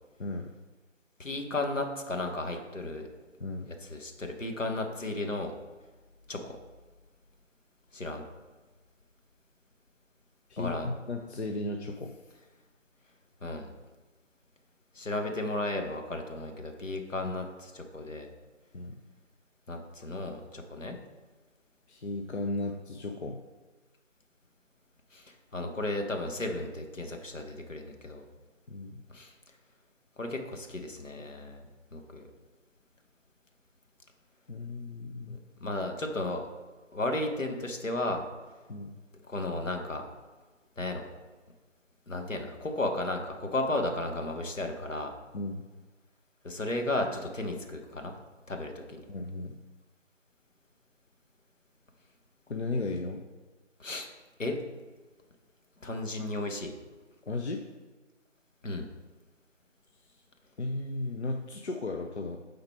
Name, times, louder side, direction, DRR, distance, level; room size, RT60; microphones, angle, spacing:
voice 1, 0.2-0.5 3.4-3.7 10.5-12.1 17.2-17.3 18.7-19.0 21.9-23.4 28.7-29.0 34.5-35.4 38.7-38.9 45.3-45.7 49.1-49.6 52.5-53.2 57.3-57.6 60.6-62.4, left 2 dB, 60° left, 3 dB, 0.6 m, -35 dB
voice 2, 1.2-3.1 3.6-5.5 6.3-6.5 7.9-8.2 10.6-10.9 13.4-13.7 14.9-18.3 19.7-21.0 25.1-28.3 29.1-29.3 30.2-31.6 31.9-32.3 35.3-36.5 36.9-38.2 39.3-40.0 40.8-41.1 42.1-45.1 46.4-48.1 48.5-49.0 53.8-54.1 54.4-54.6 55.8-56.7 58.6-58.9, left 2 dB, 80° left, 4 dB, 1.2 m, -34 dB
6.9 x 3.9 x 4.5 m, 1.3 s
figure-of-eight pair, 165°, 38 cm